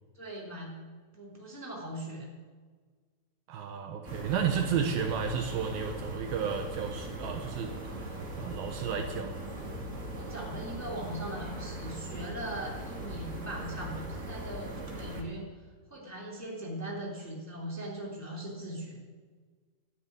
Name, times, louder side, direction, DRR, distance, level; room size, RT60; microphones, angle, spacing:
voice 1, 0.1-0.8 1.1-2.3 10.1-15.4 15.9-19.0, right 1 dB, 5° left, -3 dB, 2.4 m, -40 dB
voice 2, 3.5-7.7 8.4-9.4, right 7 dB, 70° right, 4 dB, 2.7 m, -32 dB
sound 1, 4.0-15.2, right 1 dB, 35° right, 1.2 m, -40 dB
13.5 x 8.4 x 9.6 m, 1.5 s
omnidirectional pair, 4.7 m